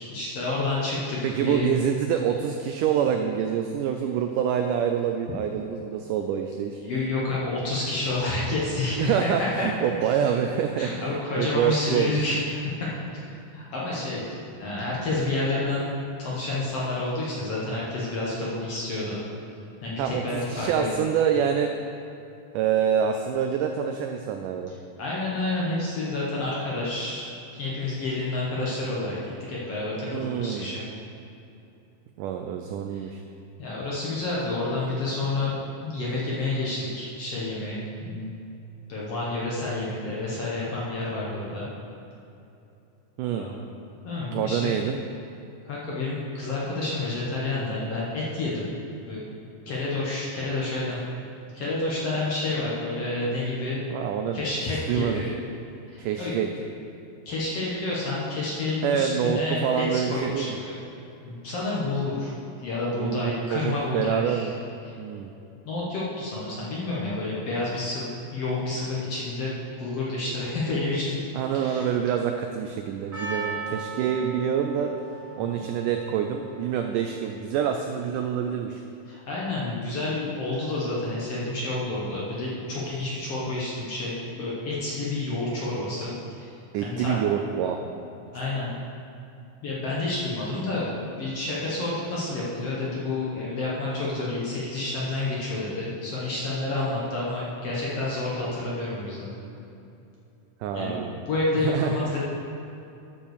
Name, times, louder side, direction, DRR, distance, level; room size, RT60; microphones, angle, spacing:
voice 1, 0.0-1.7 6.8-10.2 10.8-13.2 13.5-15.9 16.2-19.2 19.8-21.0 25.0-27.3 27.5-30.8 32.9-33.1 33.6-38.4 38.9-41.7 43.4-43.6 44.0-44.7 45.7-48.7 49.1-49.2 49.7-51.0 51.5-53.8 54.3-55.4 55.9-56.3 57.3-60.8 61.2-62.3 62.6-64.5 64.8-64.9 65.7-71.2 71.5-71.8 75.4-75.5 79.1-86.5 86.8-87.2 88.3-88.7 89.6-99.3 100.7-101.0 101.3-102.2, left 2 dB, 55° left, -6 dB, 1.9 m, -29 dB
voice 2, 1.2-6.8 9.0-11.1 11.3-12.2 20.0-21.7 22.5-24.7 30.1-30.7 32.2-33.2 43.2-43.5 44.3-45.0 53.9-54.4 54.9-55.2 56.0-56.5 58.8-60.6 63.0-64.5 65.0-65.3 71.3-75.0 75.4-78.8 86.7-87.8 100.6-101.2 101.6-101.9, right 8 dB, 85° right, 5 dB, 1.8 m, -26 dB
Percussion, 73.1-78.4, right 4 dB, 40° right, 2.1 m, -38 dB
11.0 x 5.6 x 6.6 m, 2.8 s
omnidirectional pair, 4.2 m